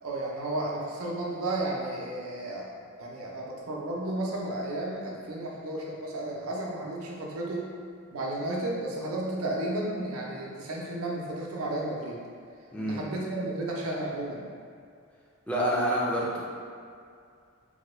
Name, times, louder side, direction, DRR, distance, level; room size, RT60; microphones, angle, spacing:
voice 1, 0.0-7.7 8.1-12.2 12.8-14.4, right 1 dB, 80° right, -3 dB, 0.6 m, -33 dB
voice 2, 12.7-13.0 15.5-16.4, equal, 5° left, -6 dB, 0.4 m, -27 dB
3.8 x 2.2 x 3.1 m, 2.3 s
head